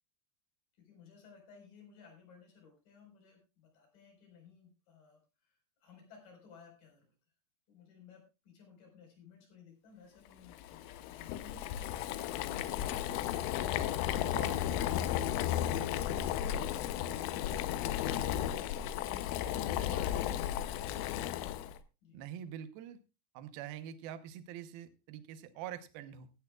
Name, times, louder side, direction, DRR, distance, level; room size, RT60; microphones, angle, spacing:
voice 1, 0.8-7.1 7.7-13.5 19.0-21.2 22.0-22.2, left 5 dB, 45° left, 1 dB, 6.0 m, -56 dB
Boiling, 10.5-21.8, left 11 dB, 90° left, 3.4 m, -34 dB
sound 1, 12.9-21.3, left 4 dB, 65° left, 3.7 m, -60 dB
voice 2, 14.2-14.7 22.1-23.0 23.3-26.3, right 10 dB, 80° right, 10 dB, 2.2 m, -45 dB
sound 2, 16.1-21.1, left 2 dB, 15° left, 6.4 m, -55 dB
16.0 x 13.5 x 2.4 m, 0.28 s
omnidirectional pair, 5.6 m